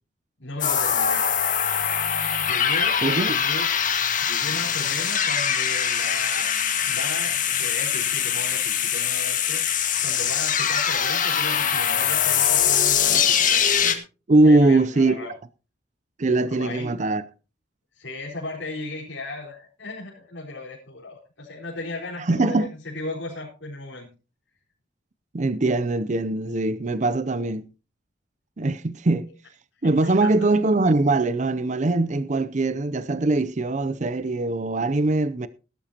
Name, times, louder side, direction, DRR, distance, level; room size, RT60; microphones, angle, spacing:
voice 1, 0.4-1.3 2.4-3.0 3.3-3.7 4.2-6.5 6.8-9.6 10.0-13.5 14.4-15.3 16.5-17.0 17.9-24.1 30.0-30.5, left 2 dB, 85° left, 4.5 m, -36 dB
sound 1, 0.6-14.0, left 8 dB, 45° left, 1.8 m, -23 dB
voice 2, 3.0-3.4 14.3-15.1 16.2-17.2 22.2-22.7 25.3-27.6 28.6-29.3 29.8-35.5, right 2 dB, 40° right, 0.5 m, -21 dB
17.5 x 12.0 x 2.9 m
head